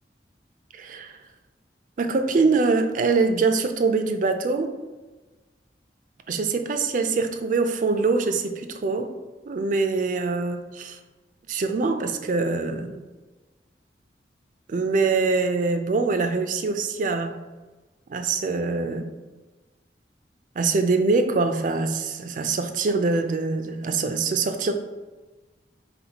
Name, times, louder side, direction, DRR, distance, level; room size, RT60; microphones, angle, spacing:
voice 1, 0.7-1.1 2.0-4.7 6.3-9.1 9.5-11.0 11.5-13.0 14.7-17.4 18.1-19.1 20.6-24.7, right 4 dB, 50° right, 7 dB, 0.4 m, -24 dB
4.2 x 3.9 x 2.8 m, 1.2 s
head